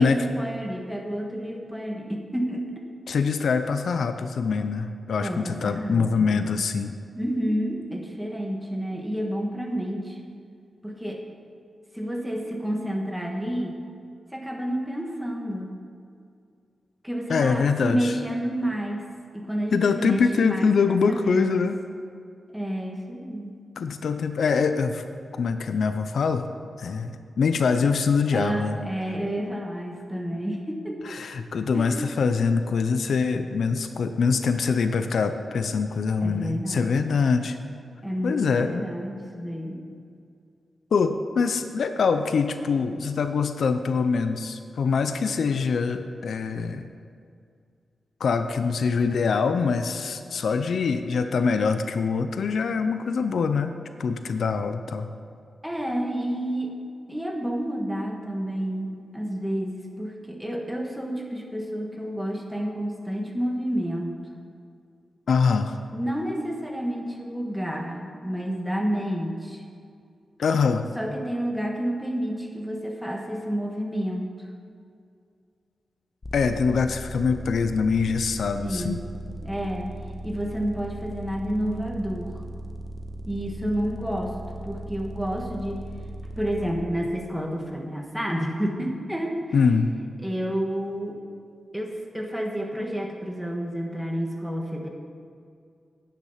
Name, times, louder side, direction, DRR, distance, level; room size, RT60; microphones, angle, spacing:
voice 1, 0.0-2.8 5.2-6.4 7.1-10.2 10.8-11.2 11.9-13.8 14.3-15.7 17.0-19.0 19.3-21.6 22.5-23.5 28.3-31.2 31.7-32.0 36.2-37.0 38.0-39.8 55.6-56.7 57.1-64.1 65.9-69.6 70.9-74.3 78.6-79.0 79.4-79.9 80.2-82.4 83.3-84.3 84.6-85.8 86.4-89.7 90.2-91.2 91.7-94.9, equal, 5° right, 1 dB, 1.5 m, -30 dB
voice 2, 3.1-6.9 17.3-18.1 19.7-21.8 23.8-25.0 25.4-26.5 26.8-28.8 31.1-37.6 38.2-38.8 40.9-46.9 48.2-55.1 65.3-65.8 70.4-70.9 76.3-79.0 89.5-89.9, left 5 dB, 75° left, 9 dB, 0.6 m, -24 dB
sound 1, 76.2-86.7, right 1 dB, 35° left, 1.1 m, -38 dB
10.5 x 9.3 x 5.6 m, 2.3 s
wide cardioid pair, 105°, 0 cm